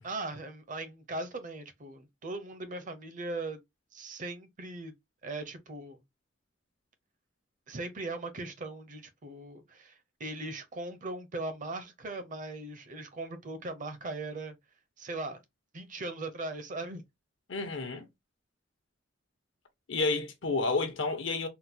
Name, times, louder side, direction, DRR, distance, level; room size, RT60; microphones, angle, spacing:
voice 1, 0.0-3.6 3.9-4.9 5.2-6.0 7.7-14.6 15.0-15.4 15.7-17.0, right 2 dB, 45° right, 0.6 m, -39 dB
voice 2, 17.5-18.0 19.9-21.5, left 3 dB, 70° left, 0.9 m, -30 dB
3.8 x 2.2 x 2.7 m
head